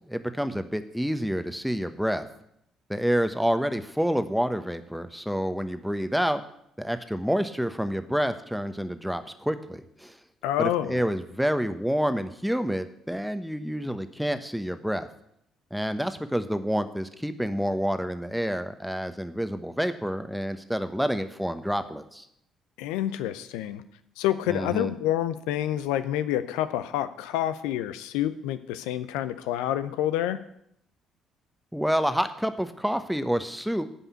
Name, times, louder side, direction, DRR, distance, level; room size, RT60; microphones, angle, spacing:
voice 1, 0.1-2.3 2.9-6.4 6.8-10.2 10.6-15.1 15.7-22.3 24.5-24.9 31.7-33.9, equal, ahead, 10 dB, 1.1 m, -28 dB
voice 2, 10.4-11.0 22.8-23.8 24.2-30.4, left 12 dB, 70° left, 12 dB, 0.5 m, -28 dB
10.0 x 5.6 x 8.3 m, 0.75 s
hypercardioid pair, 50°, 0 cm